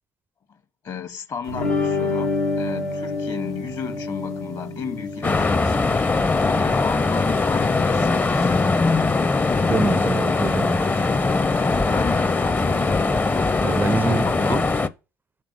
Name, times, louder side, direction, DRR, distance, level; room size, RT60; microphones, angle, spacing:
voice 1, 0.8-8.5 11.9-12.6 14.0-14.6, left 6 dB, 50° left, 1.1 m, -34 dB
sound 1, 1.5-9.2, left 3 dB, 90° left, 1.1 m, -29 dB
sound 2, 5.2-14.9, left 3 dB, 20° left, 0.6 m, -21 dB
voice 2, 9.7-10.9 13.6-14.6, right 4 dB, 25° right, 0.4 m, -26 dB
6.6 x 3.5 x 5.4 m
hypercardioid pair, 55°, 8 cm